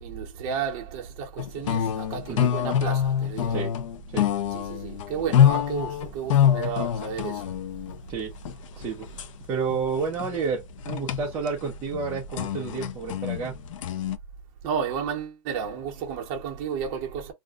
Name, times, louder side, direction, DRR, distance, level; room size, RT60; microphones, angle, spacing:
voice 1, 0.0-3.6 4.5-7.4 14.6-17.3, right 7 dB, 25° right, 0.7 m, -32 dB
sound 1, 1.4-14.2, left 9 dB, 65° left, 0.5 m, -26 dB
voice 2, 8.8-9.1 9.5-13.5, right 5 dB, 10° right, 0.3 m, -30 dB
2.4 x 2.1 x 3.6 m
supercardioid pair, 175°, 18 cm